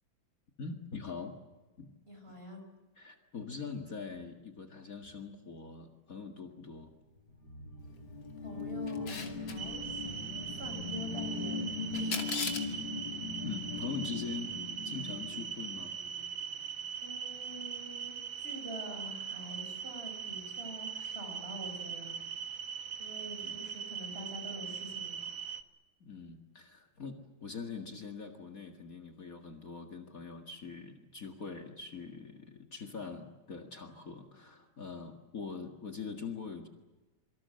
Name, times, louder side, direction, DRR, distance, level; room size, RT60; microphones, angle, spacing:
voice 1, 0.6-1.4 1.8-1.9 3.0-6.9 13.4-14.6 14.8-16.0 23.4-23.6 26.0-36.7, left 5 dB, 45° left, 4 dB, 2.3 m, -43 dB
voice 2, 2.1-2.6 8.4-11.6 11.9-12.3 12.5-12.9 17.0-22.2 23.0-25.3, right 1 dB, 30° right, 5 dB, 5.9 m, -46 dB
sound 1, 7.2-16.4, left 4 dB, 90° left, 4.1 m, -40 dB
Camera, 8.9-9.6 11.9-12.7, left 5 dB, 75° left, 3.2 m, -36 dB
sound 2, 9.6-25.6, right 7 dB, 85° right, 2.1 m, -41 dB
26.5 x 24.5 x 7.8 m, 1.1 s
omnidirectional pair, 2.1 m